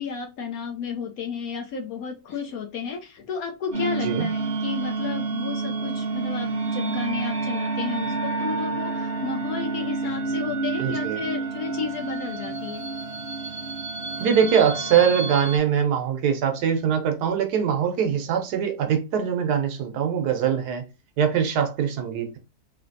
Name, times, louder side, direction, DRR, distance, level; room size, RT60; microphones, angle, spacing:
voice 1, 0.0-12.8, left 6 dB, 70° left, 0.9 m, -32 dB
sound 1, 3.7-15.6, right 3 dB, 45° right, 1.0 m, -29 dB
voice 2, 10.8-11.2 14.2-20.8 21.2-22.4, right 8 dB, 75° right, 1.2 m, -22 dB
3.2 x 2.8 x 2.6 m
omnidirectional pair, 1.9 m